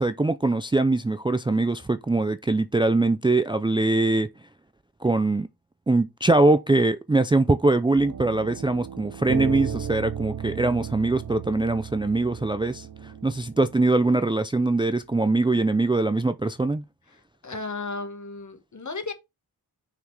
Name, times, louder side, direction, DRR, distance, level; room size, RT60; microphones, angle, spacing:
voice 1, 0.0-4.3 5.0-5.5 5.9-16.8, right 2 dB, 15° right, 0.4 m, -22 dB
sound 1, 8.0-13.7, right 8 dB, 60° right, 0.7 m, -35 dB
voice 2, 17.1-19.1, left 3 dB, 50° left, 1.7 m, -35 dB
6.0 x 5.9 x 3.3 m
wide cardioid pair, 90°, 38 cm